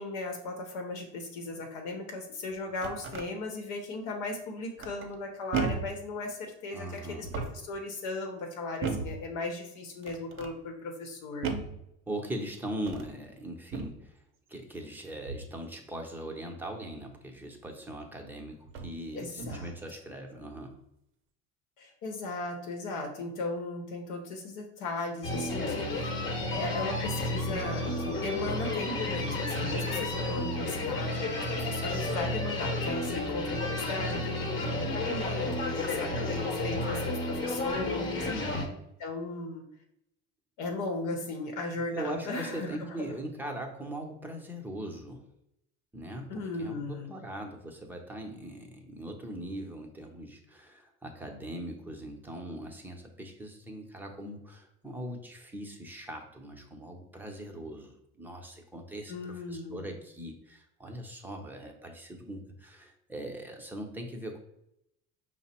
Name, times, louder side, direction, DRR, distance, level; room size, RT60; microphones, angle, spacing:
voice 1, 0.0-11.5 19.1-19.7 21.8-38.3 39.0-39.6 40.6-43.1 46.3-47.1 59.1-59.9, left 2 dB, 80° left, 2 dB, 0.9 m, -37 dB
sound 1, 2.5-3.3 4.8-5.2 5.5-6.0 7.1-7.7 8.8-9.2 10.0-10.5 11.4-11.8 12.8-13.2 13.7-14.0 15.3-15.6 17.7-17.8 18.6-19.0 19.4-19.8, right 5 dB, 40° right, 0.6 m, -35 dB
voice 2, 6.7-7.3 12.1-14.2 14.5-20.8 38.3-38.8 41.1-41.2 41.9-45.3 45.9-64.4, right 1 dB, 5° right, 1 dB, 0.7 m, -40 dB
sound 2, 25.2-38.7, left 2 dB, 40° left, 1.0 m, -32 dB
5.0 x 2.0 x 4.2 m, 0.80 s
cardioid pair, 110°, 30 cm